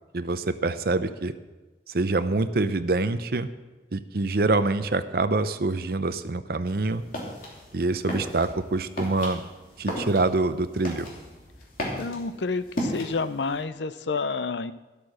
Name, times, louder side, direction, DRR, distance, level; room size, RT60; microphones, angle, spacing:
voice 1, 0.1-1.3 1.9-3.5 3.9-7.0 7.7-9.4 9.8-11.1, right 3 dB, 55° right, 11 dB, 0.7 m, -25 dB
sound 1, 6.7-13.6, equal, 50° left, 3.0 m, -36 dB
voice 2, 11.9-14.7, left 4 dB, 80° left, 14 dB, 0.6 m, -29 dB
12.5 x 8.5 x 6.4 m, 1.2 s
head